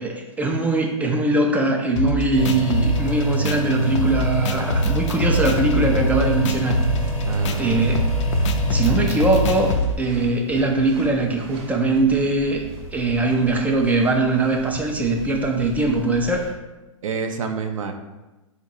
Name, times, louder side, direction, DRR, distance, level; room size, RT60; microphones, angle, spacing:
voice 1, 0.0-6.8 7.6-8.2 8.7-12.6 12.9-16.5, right 2 dB, 10° right, 1 dB, 0.3 m, -21 dB
sound 1, 2.0-9.9, left 1 dB, 60° left, 0.4 m, -26 dB
sound 2, 2.3-9.8, right 2 dB, 90° left, 0.8 m, -24 dB
sound 3, 6.4-16.5, right 1 dB, 45° right, 0.8 m, -38 dB
voice 2, 7.3-7.9 17.0-17.9, right 5 dB, 75° right, 5 dB, 0.5 m, -28 dB
3.8 x 2.1 x 4.3 m, 1.1 s
hypercardioid pair, 110°, 17 cm